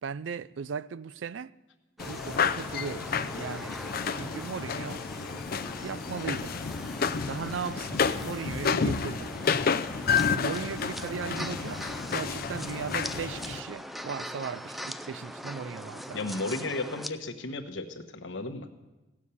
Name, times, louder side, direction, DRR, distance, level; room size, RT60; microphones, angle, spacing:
voice 1, 0.0-1.5 2.0-3.7 4.1-5.1 5.8-6.6 7.2-9.3 10.0-10.1 10.3-11.8 12.1-16.2, right 6 dB, 80° right, 0.4 m, -37 dB
sound 1, 2.0-13.6, left 6 dB, 55° left, 0.5 m, -30 dB
sound 2, 2.0-17.1, equal, ahead, 0.4 m, -41 dB
voice 2, 16.1-18.7, left 2 dB, 85° left, 1.2 m, -34 dB
16.5 x 7.4 x 8.3 m
head